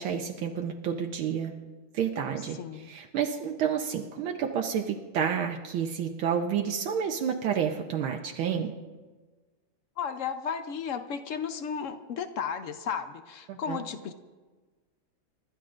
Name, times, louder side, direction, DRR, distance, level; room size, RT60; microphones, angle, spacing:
voice 1, 0.0-1.5 1.9-8.7 13.5-13.8, right 8 dB, 80° right, 2 dB, 1.6 m, -30 dB
voice 2, 2.6-2.9 10.0-14.1, left 7 dB, 75° left, 8 dB, 0.7 m, -34 dB
29.5 x 13.0 x 2.5 m, 1.3 s
omnidirectional pair, 2.2 m